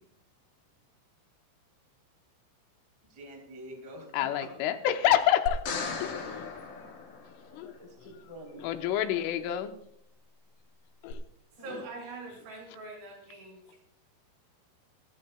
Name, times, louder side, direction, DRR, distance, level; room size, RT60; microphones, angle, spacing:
voice 1, 3.0-4.3 7.4-8.7 11.6-11.8, equal, 10° right, 2.2 m, -47 dB
voice 2, 4.1-6.5 7.5-8.1 8.6-9.7 11.0-11.2 11.7-11.8, left 11 dB, 80° left, 3.2 m, -29 dB
sound 1, 5.5-7.8 11.1-11.2, left 4 dB, 60° left, 5.1 m, -37 dB
voice 3, 11.6-13.8, right 3 dB, 90° right, 9.0 m, -43 dB
27.0 x 13.5 x 2.2 m
omnidirectional pair, 5.8 m